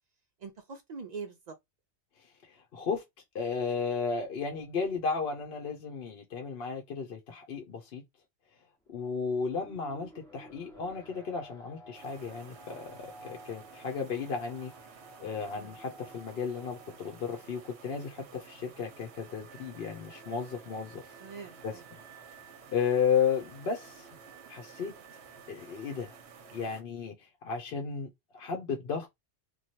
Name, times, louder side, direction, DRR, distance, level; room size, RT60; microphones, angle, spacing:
voice 1, 0.4-1.6 9.6-9.7 15.5-15.8 21.2-21.8, right 5 dB, 55° right, 0.4 m, -43 dB
voice 2, 2.2-3.0 3.3-8.0 8.9-14.7 15.2-21.1 21.6-21.8 22.7-24.1 24.5-24.9 25.5-26.1 26.5-29.1, left 6 dB, 65° left, 0.8 m, -34 dB
Alarm, 8.9-26.8, right 2 dB, 5° left, 0.6 m, -55 dB
sound 1, 11.9-26.8, right 7 dB, 75° right, 0.9 m, -53 dB
3.1 x 2.2 x 2.7 m
omnidirectional pair, 1.1 m